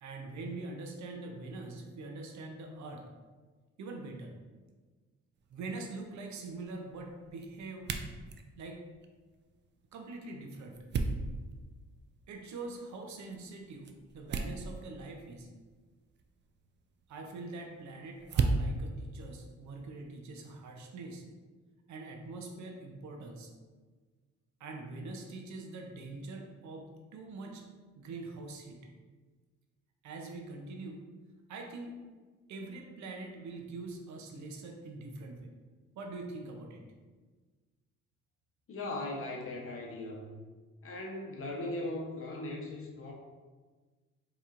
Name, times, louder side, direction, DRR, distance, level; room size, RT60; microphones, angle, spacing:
voice 1, 0.0-3.0 3.8-4.3 5.5-7.9 8.6-8.8 9.9-10.8 12.3-15.5 17.1-21.2 21.9-23.5 24.6-27.6 28.0-28.8 30.0-31.0 31.5-32.0 32.5-35.5 36.0-36.8, right 3 dB, 70° right, 2 dB, 0.7 m, -44 dB
sound 1, 5.3-20.2, right 4 dB, 40° right, 0.4 m, -39 dB
voice 2, 38.7-40.3 40.8-43.1, left 2 dB, 45° left, -1 dB, 0.9 m, -38 dB
4.4 x 3.0 x 2.5 m, 1.4 s
cardioid pair, 90°, 30 cm